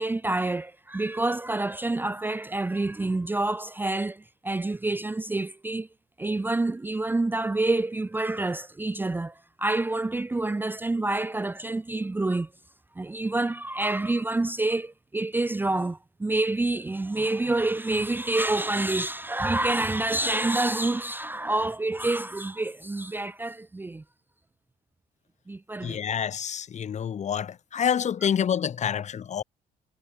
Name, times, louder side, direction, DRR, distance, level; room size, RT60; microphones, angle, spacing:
voice 1, 0.0-5.9 6.2-12.5 13.0-24.0 25.5-26.0, right 2 dB, 10° right, 0.7 m, -27 dB
voice 2, 25.8-29.4, left 8 dB, 45° left, 2.2 m, -27 dB
cardioid pair, 110°, 17 cm